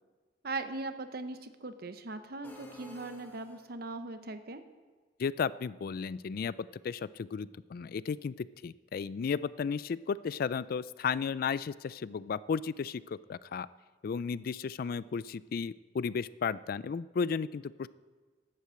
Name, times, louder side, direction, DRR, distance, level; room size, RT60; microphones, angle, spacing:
voice 1, 0.4-4.6, right 3 dB, 55° right, 9 dB, 0.9 m, -39 dB
sound 1, 2.4-4.0, left 1 dB, 10° left, 1.3 m, -52 dB
voice 2, 5.2-6.5 6.8-13.7 14.0-17.9, left 6 dB, 50° left, 19 dB, 0.3 m, -34 dB
11.5 x 8.3 x 7.6 m, 1.4 s
head